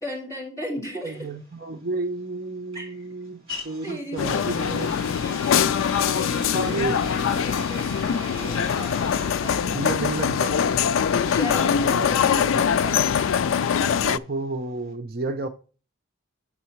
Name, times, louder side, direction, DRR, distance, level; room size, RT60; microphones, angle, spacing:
voice 1, 0.0-1.3 2.7-3.0 3.8-4.8 6.1-9.8 11.1-13.0, left 1 dB, 15° left, 3.0 m, -36 dB
voice 2, 1.0-5.0 6.5-7.5 9.7-10.6 12.0-12.1 14.0-15.5, right 2 dB, 45° right, 0.6 m, -31 dB
sound 1, 1.1-14.9, equal, 25° right, 3.5 m, -41 dB
sound 2, 4.2-14.2, left 7 dB, 70° left, 0.3 m, -23 dB
7.4 x 5.8 x 4.5 m
head